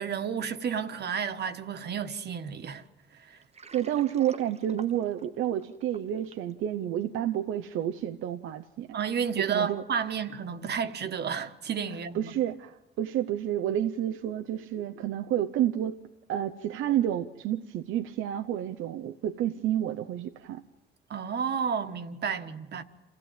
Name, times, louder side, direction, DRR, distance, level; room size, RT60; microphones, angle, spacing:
voice 1, 0.0-2.8 3.2-3.4 8.9-12.3 21.1-22.8, right 7 dB, 55° right, 1.5 m, -31 dB
Water, 3.4-6.5, right 5 dB, 35° right, 1.0 m, -48 dB
voice 2, 3.7-8.9 9.4-9.8 12.1-16.0 16.3-20.6, right 11 dB, 85° right, 0.8 m, -30 dB
27.0 x 16.0 x 9.1 m
cardioid pair, 90°, 20 cm